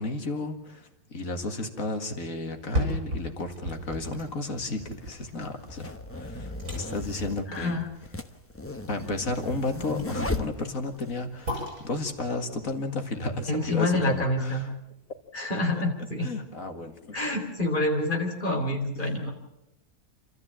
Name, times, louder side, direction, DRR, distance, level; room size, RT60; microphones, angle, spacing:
voice 1, 0.0-7.8 8.9-14.7 15.7-15.8 16.2-17.2, left 2 dB, 65° left, 6 dB, 2.4 m, -33 dB
sound 1, 2.5-14.5 14.9-15.0, equal, 65° right, 6.3 m, -38 dB
sound 2, 3.7-3.8 4.7-11.1, left 2 dB, 10° left, 0.9 m, -36 dB
voice 2, 7.5-7.8 13.5-14.6 15.3-16.3 17.1-19.3, left 1 dB, 35° left, 1 dB, 4.6 m, -27 dB
29.0 x 13.5 x 8.8 m, 0.89 s
omnidirectional pair, 1.5 m